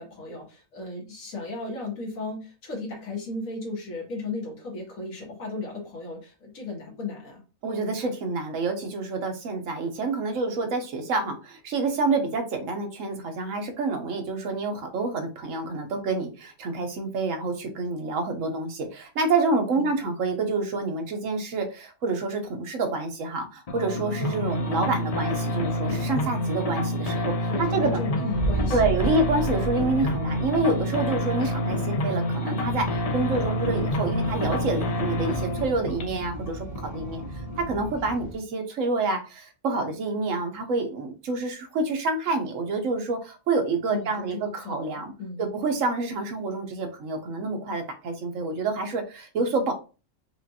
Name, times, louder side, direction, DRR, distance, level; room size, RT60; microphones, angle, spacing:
voice 1, 0.0-7.4 19.7-20.1 27.1-27.2 27.5-29.2 43.9-45.4, left 3 dB, 85° left, -1 dB, 1.7 m, -35 dB
voice 2, 7.6-27.3 27.6-28.0 28.7-36.7 36.9-37.2 37.6-45.1 45.4-49.7, right 3 dB, 75° right, 5 dB, 1.2 m, -28 dB
sound 1, 23.7-37.8, left 1 dB, 45° left, 0.5 m, -28 dB
Boom, 28.3-31.3, right 3 dB, 55° right, 1.9 m, -31 dB
sound 2, 32.6-38.4, right 1 dB, 35° right, 0.8 m, -39 dB
5.0 x 2.4 x 2.7 m, 0.33 s
omnidirectional pair, 1.4 m